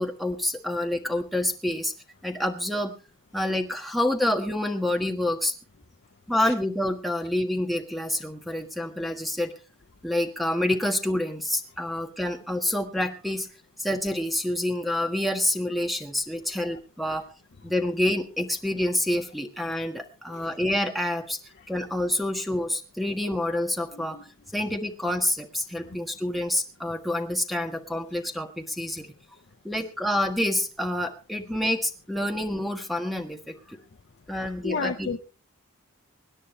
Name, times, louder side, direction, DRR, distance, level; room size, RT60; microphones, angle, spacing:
voice 1, 0.0-1.9 2.2-2.9 3.3-5.5 6.3-9.5 10.0-13.5 13.8-17.2 17.6-21.4 21.7-24.2 24.5-29.1 29.6-33.8 34.3-35.1, left 1 dB, ahead, 5 dB, 1.4 m, -27 dB
voice 2, 16.5-16.8 20.3-20.5 23.9-24.2 34.6-35.2, left 5 dB, 50° left, 7 dB, 0.7 m, -33 dB
25.0 x 9.9 x 3.2 m, 0.33 s
head